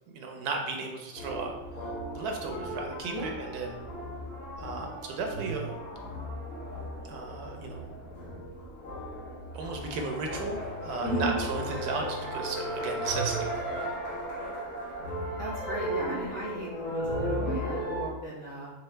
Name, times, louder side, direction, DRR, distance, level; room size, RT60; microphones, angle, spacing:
voice 1, 0.1-1.5 2.1-3.8 4.6-5.7 7.0-8.0 9.5-13.5, right 3 dB, 75° right, 2 dB, 1.1 m, -35 dB
sound 1, 1.2-18.0, equal, 65° left, 1.4 m, -35 dB
voice 2, 11.0-11.4 15.4-18.7, right 1 dB, 40° left, -9 dB, 1.5 m, -36 dB
4.6 x 2.4 x 3.2 m, 1.1 s
omnidirectional pair, 1.7 m